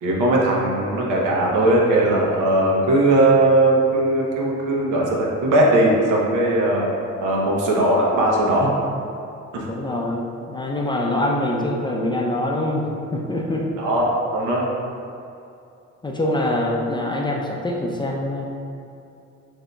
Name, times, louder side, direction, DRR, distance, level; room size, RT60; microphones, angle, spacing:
voice 1, 0.0-6.9 7.2-8.7 9.5-9.7 13.8-14.7, right 1 dB, 85° right, -3 dB, 0.8 m, -19 dB
voice 2, 9.7-13.7 16.0-18.5, left 1 dB, 15° left, -1 dB, 0.4 m, -24 dB
6.1 x 2.7 x 2.3 m, 2.6 s
cardioid pair, 90°, 30 cm